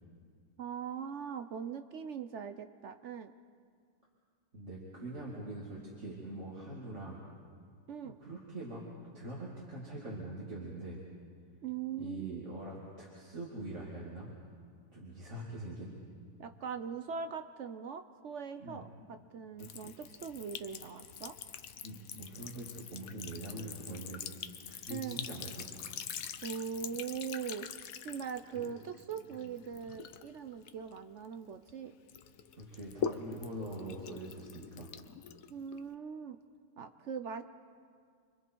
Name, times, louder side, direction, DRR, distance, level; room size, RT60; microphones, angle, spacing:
voice 1, 0.6-3.3 7.9-8.2 11.6-12.4 16.4-21.4 24.9-25.3 26.4-27.7 28.0-31.9 35.5-36.4 36.8-37.4, right 7 dB, 60° right, 9 dB, 0.8 m, -41 dB
voice 2, 4.5-7.2 8.2-8.8 9.1-11.0 12.0-14.3 14.9-16.0 18.6-18.8 19.6-19.8 21.8-24.2 24.7-25.8 28.4-28.7 29.4-29.5 32.6-34.9, right 1 dB, 40° right, -5 dB, 3.0 m, -43 dB
Sink (filling or washing) / Trickle dribble, 19.6-31.7 32.1-35.9, left 8 dB, 60° left, 1.1 m, -44 dB
30.0 x 23.5 x 4.6 m, 2.1 s
omnidirectional pair, 1.8 m